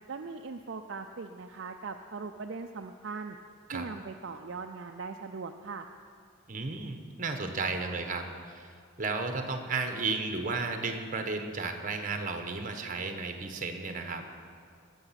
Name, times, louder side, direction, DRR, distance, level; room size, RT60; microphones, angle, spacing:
voice 1, 0.1-3.4 3.7-5.9, right 4 dB, 55° right, 4 dB, 0.5 m, -40 dB
voice 2, 6.5-8.7 9.0-14.2, right 3 dB, 35° right, 5 dB, 1.0 m, -33 dB
20.5 x 7.1 x 5.8 m, 2.2 s
head